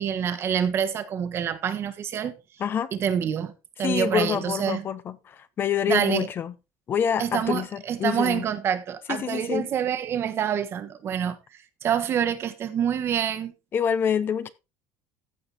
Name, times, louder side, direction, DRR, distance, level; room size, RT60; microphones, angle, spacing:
voice 1, 0.0-2.4 2.9-3.5 3.8-4.8 5.9-6.3 7.2-13.5, right 8 dB, 40° right, 1.3 m, -27 dB
voice 2, 2.6-2.9 3.8-6.5 6.9-8.5 9.1-9.7 13.7-14.5, left 8 dB, 35° left, 0.7 m, -26 dB
15.0 x 5.0 x 4.1 m
cardioid pair, 145°, 7 cm